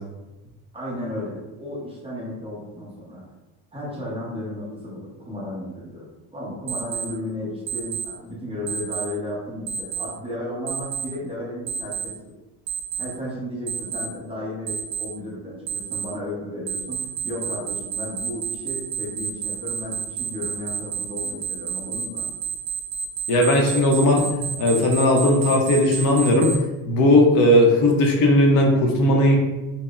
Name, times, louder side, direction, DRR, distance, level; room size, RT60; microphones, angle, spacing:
voice 1, 0.7-3.2 3.7-6.1 6.3-12.3 13.0-22.3, left 1 dB, 15° right, -6 dB, 0.8 m, -34 dB
Alarm, 6.7-7.1 7.7-8.1 8.7-9.1 9.7-10.1 10.7-11.1 11.7-12.1 12.7-13.1 13.7-14.1 14.7-15.1 15.7-16.1 16.7-26.6, right 7 dB, 45° right, 0.5 m, -29 dB
voice 2, 23.3-24.3 24.6-26.5 26.9-29.4, left 1 dB, 55° left, 1 dB, 0.7 m, -17 dB
5.4 x 2.0 x 2.4 m, 1.1 s
cardioid pair, 160°, 42 cm